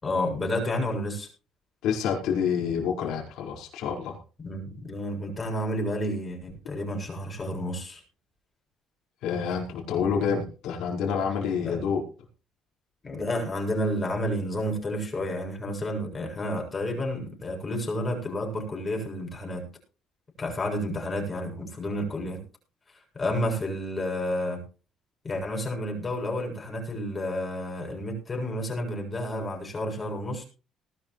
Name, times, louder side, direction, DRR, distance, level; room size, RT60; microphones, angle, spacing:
voice 1, 0.0-1.3 4.4-8.0 11.6-11.8 13.0-19.7 20.4-22.4 23.1-24.6 25.2-30.4, left 1 dB, 25° left, 0 dB, 7.5 m, -30 dB
voice 2, 1.8-4.2 9.2-12.0, left 7 dB, 75° left, -1 dB, 4.9 m, -28 dB
20.0 x 12.0 x 3.2 m, 0.35 s
cardioid pair, 110°, 0 cm